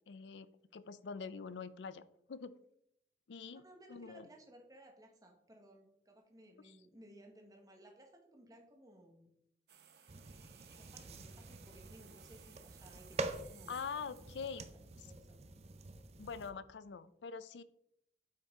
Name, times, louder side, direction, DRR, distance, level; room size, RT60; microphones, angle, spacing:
voice 1, 0.1-2.0 2.3-2.6 3.3-3.6 3.9-4.3 13.7-14.6 16.2-17.6, left 5 dB, 85° left, 15 dB, 0.5 m, -44 dB
voice 2, 3.5-9.3 10.6-13.8 14.4-15.4, right 1 dB, 20° right, 2 dB, 1.2 m, -59 dB
sound 1, 9.7-15.4, right 8 dB, 70° right, 0.8 m, -61 dB
sound 2, 10.1-16.5, right 3 dB, 35° right, 0.6 m, -46 dB
8.4 x 5.6 x 3.6 m, 0.77 s
head